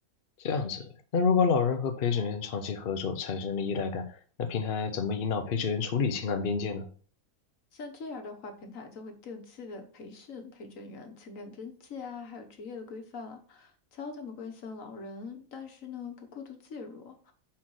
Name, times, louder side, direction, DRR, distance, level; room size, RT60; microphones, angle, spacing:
voice 1, 0.4-6.9, left 5 dB, 50° left, 7 dB, 0.9 m, -29 dB
voice 2, 7.7-17.3, left 4 dB, 75° left, 4 dB, 1.6 m, -43 dB
5.7 x 4.4 x 6.2 m, 0.41 s
omnidirectional pair, 1.4 m